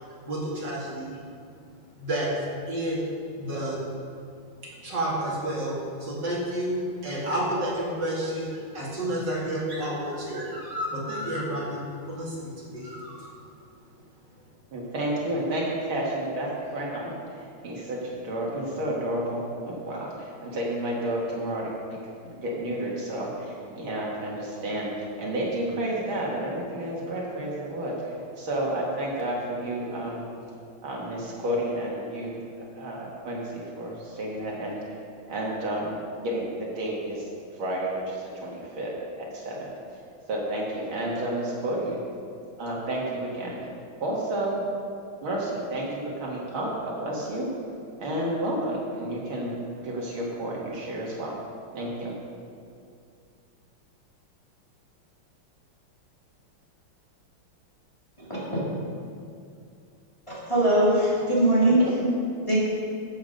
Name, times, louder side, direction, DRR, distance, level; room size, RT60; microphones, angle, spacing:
voice 1, 0.2-1.2 1.9-2.3 2.7-3.1 3.3-3.8 4.6-13.3, right 1 dB, 55° right, -6 dB, 3.0 m, -30 dB
voice 2, 14.7-21.7 22.2-30.2 30.8-32.4 32.7-34.8 35.3-37.3 37.6-39.7 40.3-42.0 42.6-43.6 44.0-44.6 45.2-47.5 48.0-49.6 49.8-51.4 51.7-52.1 61.8-61.9, right 1 dB, 75° right, -3 dB, 2.6 m, -31 dB
voice 3, 60.3-61.8 62.5-62.6, right 1 dB, 15° left, -9 dB, 3.2 m, -21 dB
13.5 x 8.1 x 5.2 m, 2.4 s
omnidirectional pair, 2.3 m